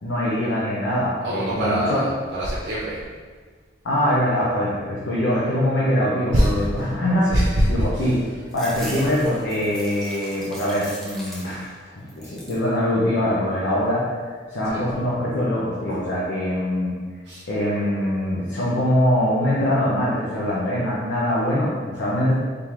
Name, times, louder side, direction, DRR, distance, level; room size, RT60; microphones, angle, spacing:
voice 1, 0.0-2.0 3.8-7.3 7.7-8.2 8.5-16.9 17.5-22.3, left 1 dB, 85° left, -7 dB, 0.8 m, -23 dB
voice 2, 1.2-3.0 6.3-6.9 7.3-7.6 7.9-8.1 14.6-14.8 17.3-17.4, equal, 80° right, -6 dB, 0.7 m, -23 dB
sound 1, 8.5-11.8 12.1-12.7 13.2-13.9, equal, ahead, 0.5 m, -40 dB
3.7 x 3.4 x 3.0 m, 1.6 s
head